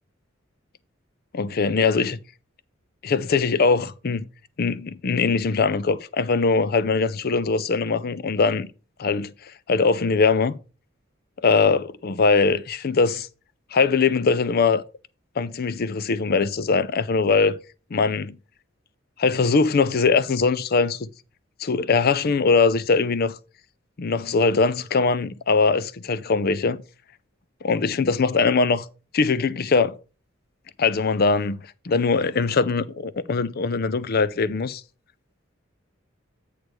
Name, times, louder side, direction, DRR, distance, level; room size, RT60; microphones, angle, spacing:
voice 1, 1.3-2.2 3.0-4.3 4.6-8.7 9.0-9.3 9.7-10.6 11.4-13.3 13.7-14.8 15.4-17.6 17.9-18.3 19.2-21.1 21.6-23.3 24.0-26.8 27.6-28.9 29.1-30.0 30.8-34.8, left 4 dB, 50° left, 0.5 m, -21 dB
8.2 x 3.3 x 6.1 m
head